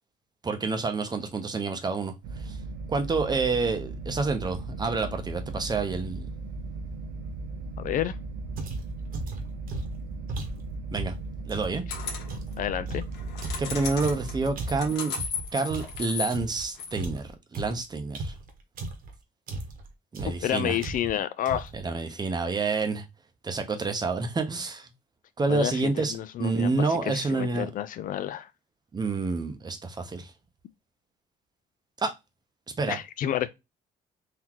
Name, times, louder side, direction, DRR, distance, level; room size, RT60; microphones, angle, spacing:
voice 1, 0.4-2.6 2.9-6.3 10.9-11.1 11.5-11.8 13.6-15.1 15.5-18.3 20.1-20.8 21.7-23.0 23.4-24.9 25.4-27.7 28.9-30.3 32.0-32.1 32.8-33.0, right 4 dB, 25° right, 0.8 m, -28 dB
sound 1, 2.2-14.9, right 3 dB, 75° right, 0.7 m, -37 dB
voice 2, 7.8-8.2 12.6-13.0 20.2-21.7 25.5-28.5 32.9-33.5, left 11 dB, 55° left, 0.4 m, -30 dB
sound 2, 8.6-11.8 12.3-16.7 16.9-19.1 19.5-19.9 20.1-20.5 20.8-21.2 21.5-21.9, right 2 dB, 55° right, 1.2 m, -37 dB
sound 3, 11.9-12.4 13.1-17.0, left 6 dB, 80° left, 1.3 m, -35 dB
4.0 x 2.8 x 2.9 m
cardioid pair, 110°, 17 cm